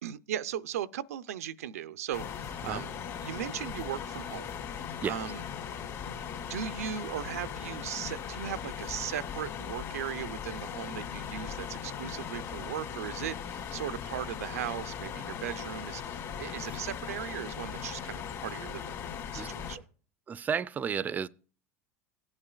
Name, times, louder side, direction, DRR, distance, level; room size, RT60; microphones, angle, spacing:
voice 1, 0.0-2.9 3.2-5.4 5.7-6.2 6.5-19.0 19.3-19.8, right 10 dB, 90° right, 0.5 m, -38 dB
sound 1, 2.1-19.8, left 7 dB, 45° left, 2.0 m, -39 dB
voice 2, 20.3-21.3, right 7 dB, 20° right, 0.4 m, -32 dB
17.0 x 8.7 x 2.3 m
supercardioid pair, 110°, 8 cm